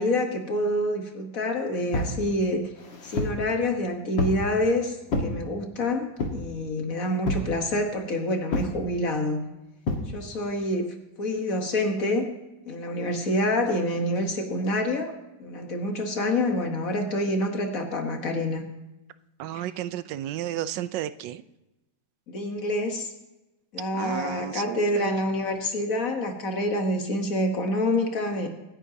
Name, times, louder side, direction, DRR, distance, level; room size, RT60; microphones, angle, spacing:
voice 1, 0.0-2.7 3.0-9.4 10.1-10.9 11.2-12.3 12.7-15.1 15.4-18.6 19.5-19.7 22.3-23.1 23.7-28.5, left 1 dB, 50° left, 4 dB, 1.7 m, -27 dB
sound 1, 1.9-2.2 2.8-3.4 4.2-4.5 5.1-5.3 6.2-6.5 7.3-7.5 8.5-8.8 9.9-10.1, left 2 dB, 85° left, 2.5 m, -28 dB
voice 2, 19.4-21.4 23.9-25.2, right 12 dB, 80° right, 14 dB, 1.2 m, -33 dB
25.0 x 9.9 x 2.8 m, 0.99 s
omnidirectional pair, 2.0 m